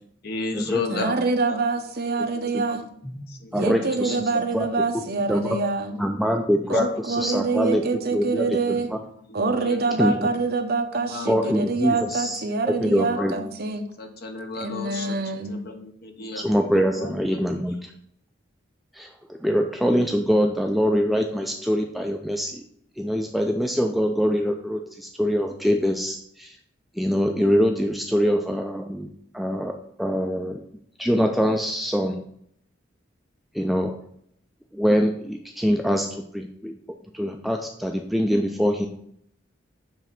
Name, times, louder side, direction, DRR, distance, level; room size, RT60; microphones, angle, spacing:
voice 1, 0.2-1.1 1.5-1.6 2.3-2.9 3.3-4.2 4.4-4.5 4.9-5.1 5.9-6.7 7.2-7.3 7.6-8.2 8.8-10.3 10.9-13.5 14.0-16.4 16.9-17.4, left 3 dB, 55° left, 5 dB, 1.0 m, -36 dB
voice 2, 0.9-2.8 3.6-6.0 6.7-8.9 9.3-13.8 14.6-15.6, right 3 dB, 55° right, 5 dB, 0.8 m, -25 dB
voice 3, 2.2-2.6 3.0-3.3 3.5-4.7 5.3-5.6 6.0-7.8 8.1-9.0 10.0-10.3 11.3-13.3 16.3-17.9 18.9-22.6 23.0-26.6 26.9-29.1 29.3-30.6 31.0-32.2 33.5-33.9 34.7-36.8 37.1-38.9, equal, ahead, 3 dB, 0.4 m, -24 dB
7.0 x 3.3 x 5.7 m, 0.68 s
head